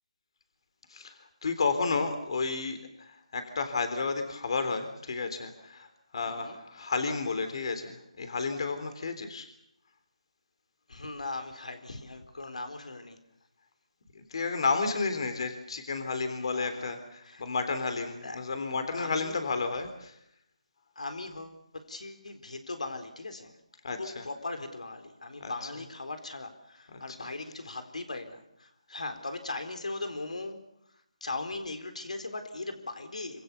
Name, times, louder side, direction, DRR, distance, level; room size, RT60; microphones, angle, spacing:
voice 1, 0.9-9.5 14.2-20.1 23.8-24.3 25.4-25.8 26.9-27.2, left 4 dB, 50° left, 8 dB, 3.4 m, -32 dB
voice 2, 6.2-6.6 10.9-13.2 16.4-16.9 17.2-17.4 18.2-18.4 18.9-19.4 21.0-23.5 23.9-30.6 31.2-33.4, left 2 dB, 80° left, 7 dB, 4.1 m, -39 dB
26.5 x 26.0 x 7.0 m, 0.76 s
figure-of-eight pair, 165°, 4 cm